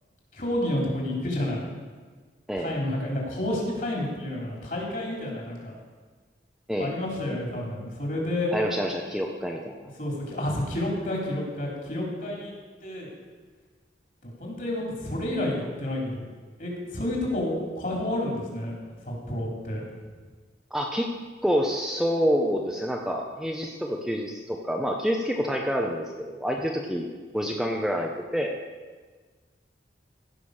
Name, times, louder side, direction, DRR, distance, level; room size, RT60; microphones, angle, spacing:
voice 1, 0.3-1.7 2.6-5.7 6.8-8.5 10.0-12.5 12.8-13.1 14.2-16.3 16.6-18.7 19.1-19.8, left 1 dB, 50° left, -2 dB, 3.4 m, -30 dB
voice 2, 2.5-2.8 6.7-6.9 8.5-9.9 20.7-21.1 21.4-27.1 27.3-28.5, equal, ahead, 0 dB, 0.7 m, -27 dB
15.5 x 5.8 x 6.5 m, 1.4 s
head